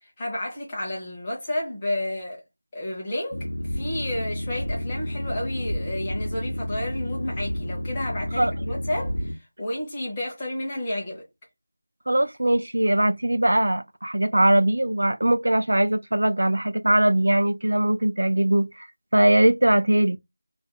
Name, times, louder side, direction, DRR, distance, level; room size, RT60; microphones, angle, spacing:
voice 1, 0.0-2.4 2.7-11.3, left 1 dB, 10° left, 0.5 m, -31 dB
Boat Water vehicle, 3.3-9.3, equal, 75° left, 0.6 m, -30 dB
voice 2, 12.1-18.9 19.1-20.2, right 1 dB, 60° right, 0.3 m, -21 dB
2.3 x 2.2 x 2.8 m
figure-of-eight pair, 180°, 0 cm